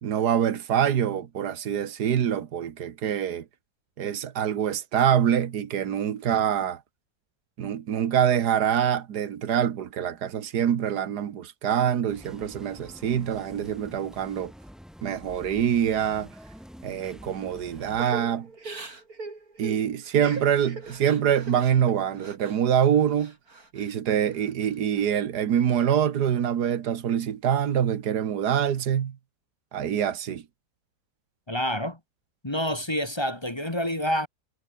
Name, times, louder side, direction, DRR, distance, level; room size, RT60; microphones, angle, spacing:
voice 1, 0.0-3.5 4.0-6.8 7.6-14.5 15.0-16.3 16.8-18.5 19.6-23.3 23.7-29.2 29.7-30.5, right 9 dB, 85° right, 1.8 m, -25 dB
sound 1, 12.1-18.1, equal, ahead, 4.9 m, -47 dB
Crying sobbing / Breathing, 18.0-22.6 23.0-23.9 24.3-25.1, right 3 dB, 65° right, 4.6 m, -41 dB
voice 2, 31.5-32.0 32.4-34.3, equal, 15° left, 1.9 m, -28 dB
omnidirectional pair, 1.7 m